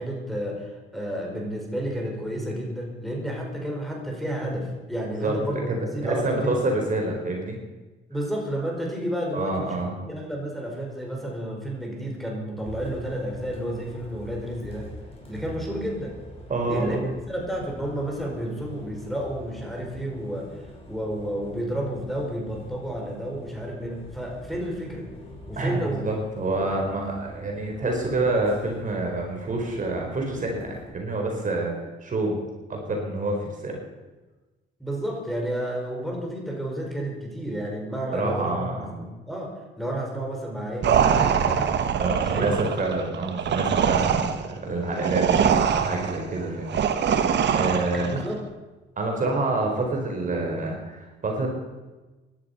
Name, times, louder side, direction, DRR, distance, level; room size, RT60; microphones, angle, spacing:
voice 1, 0.0-6.5 8.1-14.9 15.3-16.2 16.7-25.1 25.5-26.0 26.6-26.7 34.8-42.6 47.9-48.4, right 1 dB, ahead, -1 dB, 5.1 m, -31 dB
voice 2, 5.1-5.8 6.0-7.6 9.3-9.9 16.5-17.1 25.6-31.7 32.0-32.4 32.7-33.8 38.1-38.9 42.0-48.3 49.0-51.5, right 2 dB, 40° right, 1 dB, 4.5 m, -27 dB
Bus, 12.6-30.9, left 1 dB, 30° left, 5.5 m, -45 dB
sound 1, 40.8-48.2, right 7 dB, 65° right, 1.3 m, -23 dB
17.0 x 12.0 x 5.7 m, 1.2 s
cardioid pair, 90°, 20 cm